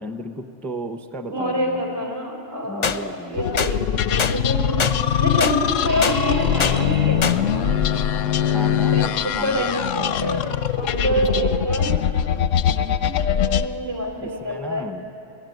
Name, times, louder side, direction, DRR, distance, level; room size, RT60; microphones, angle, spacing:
voice 1, 0.0-2.0 2.6-3.7 8.5-10.4 14.2-15.1, equal, ahead, 7 dB, 0.6 m, -34 dB
voice 2, 1.3-3.8 4.1-7.3 8.9-10.4 10.8-12.1 13.0-14.8, equal, 80° right, -1 dB, 3.7 m, -26 dB
sound 1, 2.8-3.0 3.6-3.7 4.2-4.3 4.8-5.0 5.4-5.6 6.0-6.2 6.6-6.8 7.2-7.4, left 6 dB, 45° left, 0.6 m, -22 dB
sound 2, 3.4-13.7, left 9 dB, 85° left, 1.0 m, -22 dB
sound 3, 5.9-9.9, right 4 dB, 40° right, 0.9 m, -34 dB
22.5 x 16.5 x 9.3 m, 2.9 s
omnidirectional pair, 1.3 m